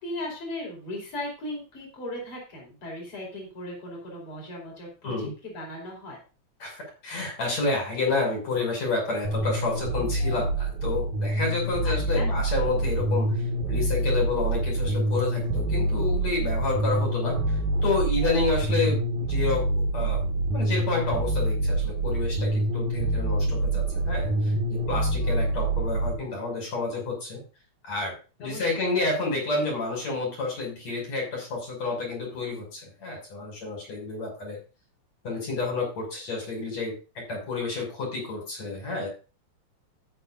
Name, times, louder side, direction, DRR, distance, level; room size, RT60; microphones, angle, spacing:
voice 1, 0.0-6.2 11.8-12.3 28.4-29.4, left 1 dB, 45° left, -1 dB, 5.6 m, -37 dB
voice 2, 6.6-13.3 13.7-17.4 17.8-20.2 20.5-27.4 27.8-28.1 28.4-34.6 35.2-39.1, left 3 dB, 60° left, -1 dB, 7.8 m, -29 dB
sound 1, 9.3-26.1, right 2 dB, 80° right, 2.7 m, -26 dB
13.5 x 11.0 x 2.7 m, 0.33 s
omnidirectional pair, 3.4 m